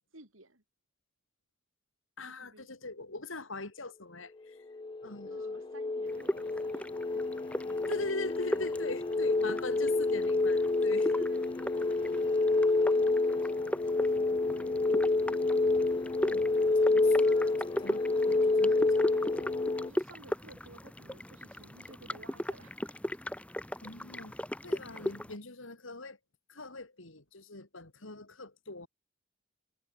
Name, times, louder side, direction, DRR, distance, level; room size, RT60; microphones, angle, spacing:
voice 1, 0.1-0.6 2.3-2.7 5.3-7.4 8.8-9.4 11.1-11.5 11.7-14.7 19.8-22.9, right 2 dB, 75° right, 5.7 m, -55 dB
voice 2, 2.2-4.6 5.0-5.6 7.9-11.1 16.3-19.5 23.8-24.3 24.6-26.2 26.5-28.9, left 2 dB, 75° left, 3.6 m, -42 dB
sound 1, 4.7-19.9, left 3 dB, 25° left, 0.4 m, -28 dB
sound 2, 6.1-25.3, left 1 dB, 5° left, 0.8 m, -39 dB
head